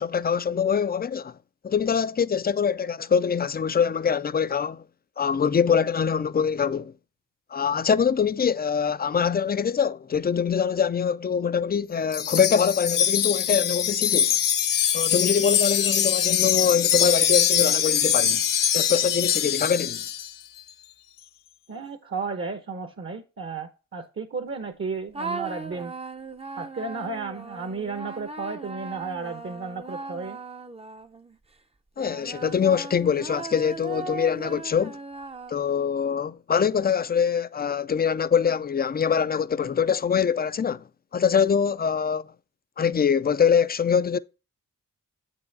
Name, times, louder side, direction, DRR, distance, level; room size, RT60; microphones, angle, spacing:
voice 1, 0.0-1.3 1.6-4.8 5.2-6.9 7.5-14.4 14.9-18.4 18.7-20.0 32.0-35.0 35.5-40.8 41.1-42.3 42.8-44.2, left 7 dB, 30° left, 0.4 m, -24 dB
Wind chime, 12.1-20.3, left 9 dB, 75° left, 0.7 m, -23 dB
voice 2, 21.7-25.9 26.6-30.4, right 4 dB, 40° right, 0.9 m, -33 dB
sound 1, 25.1-31.4 32.0-35.9, right 4 dB, 20° right, 0.6 m, -38 dB
8.4 x 5.5 x 4.0 m
wide cardioid pair, 85°, 33 cm